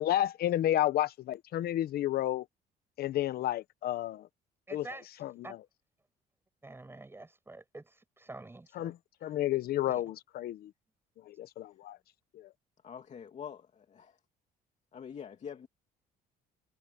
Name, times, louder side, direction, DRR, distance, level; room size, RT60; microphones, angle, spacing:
voice 1, 0.0-2.4 3.0-4.3 4.7-4.9 5.2-5.3 8.8-10.7 11.3-12.0 12.3-12.5, left 13 dB, 65° left, 1.1 m, -31 dB
voice 2, 4.7-5.1 5.4-5.6 6.6-8.9 9.9-10.0, right 2 dB, 15° right, 7.6 m, -47 dB
voice 3, 12.8-14.2 14.9-15.7, left 7 dB, 45° left, 2.7 m, -45 dB
cardioid pair, 110°, 17 cm